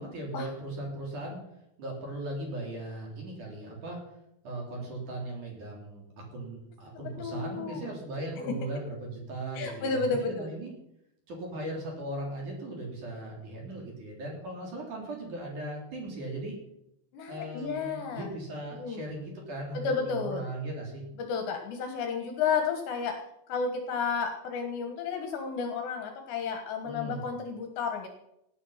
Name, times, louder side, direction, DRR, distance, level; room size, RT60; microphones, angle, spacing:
voice 1, 0.0-1.4 1.8-4.0 4.4-6.0 6.3-10.7 11.3-16.6 17.3-21.0 26.8-27.2, right 1 dB, 40° right, 0 dB, 4.5 m, -38 dB
voice 2, 6.9-7.9 8.4-8.5 9.5-10.5 17.1-18.3 18.7-19.0 19.7-20.5 21.2-23.2 23.5-28.1, left 5 dB, 65° left, 6 dB, 3.3 m, -32 dB
17.5 x 10.5 x 5.8 m, 0.81 s
omnidirectional pair, 5.9 m